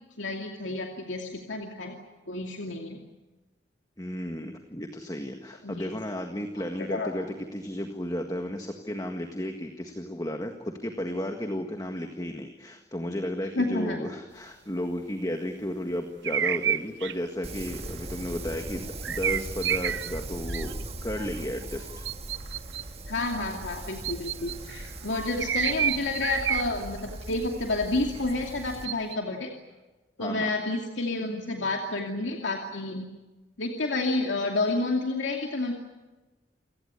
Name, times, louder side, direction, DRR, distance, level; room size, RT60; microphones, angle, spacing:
voice 1, 0.2-2.0 2.3-3.0 5.6-5.9 6.8-7.1 13.5-14.0 23.1-29.5 30.2-33.1 33.6-35.7, left 2 dB, 90° left, 1 dB, 2.6 m, -30 dB
voice 2, 4.0-7.3 7.5-20.7 21.0-22.1 30.2-30.5, equal, 20° left, 4 dB, 1.7 m, -33 dB
sound 1, 16.2-17.1 17.7-17.9 19.0-20.2 20.5-20.8 22.1-22.8 24.0-24.8 25.4-27.1 27.4-27.5 28.9-29.2, right 9 dB, 75° right, 0.8 m, -29 dB
Wind, 17.4-28.9, right 2 dB, 35° right, 1.7 m, -39 dB
29.0 x 17.5 x 9.7 m, 1.2 s
head